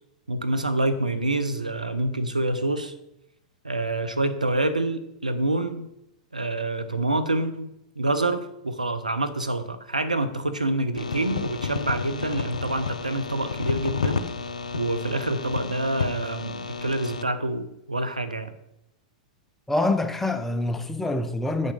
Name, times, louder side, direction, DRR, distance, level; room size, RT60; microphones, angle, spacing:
voice 1, 0.3-2.9 3.6-5.9 6.3-7.7 8.0-14.3 14.7-18.5, right 2 dB, 90° right, 0.8 m, -27 dB
sound 1, 11.0-17.2, left 5 dB, 75° left, 0.5 m, -31 dB
voice 2, 19.7-21.7, left 2 dB, 5° left, 0.7 m, -25 dB
8.5 x 6.5 x 4.9 m
figure-of-eight pair, 95°, 4 cm